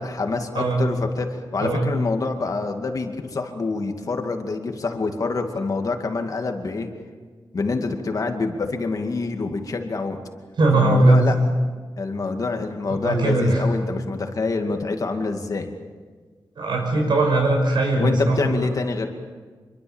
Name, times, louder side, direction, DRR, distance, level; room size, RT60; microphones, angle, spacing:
voice 1, 0.0-6.9 7.5-10.2 10.8-11.4 12.0-15.7 18.0-19.1, left 3 dB, 45° left, 4 dB, 2.3 m, -26 dB
voice 2, 10.6-11.2 12.9-13.6 16.6-18.4, right 2 dB, 70° right, 0 dB, 5.9 m, -19 dB
26.5 x 23.5 x 7.2 m, 1.5 s
wide cardioid pair, 175°, 8 cm